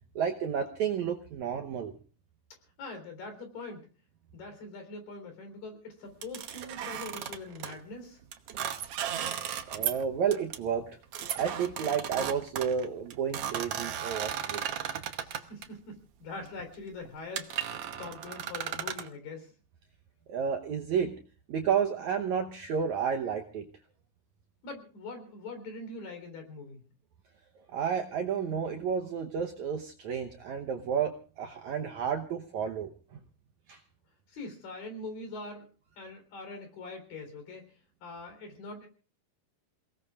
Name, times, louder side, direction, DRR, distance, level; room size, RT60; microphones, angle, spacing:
voice 1, 0.2-1.9 9.7-10.9 11.4-14.6 20.3-21.1 21.5-23.7 27.7-32.9 33.7-33.8, right 7 dB, 70° right, 4 dB, 1.9 m, -31 dB
voice 2, 2.8-3.9 4.3-8.2 15.2-19.5 24.6-26.8 34.3-35.7 36.0-37.6 38.0-38.9, left 3 dB, 70° left, 5 dB, 5.4 m, -43 dB
sound 1, 6.2-7.7 8.3-10.0 10.3-10.6 11.1-15.7 16.4-16.6 17.1-17.2 17.4-19.1, right 9 dB, 90° right, 1.3 m, -35 dB
28.5 x 18.5 x 2.4 m, 0.37 s
omnidirectional pair, 4.3 m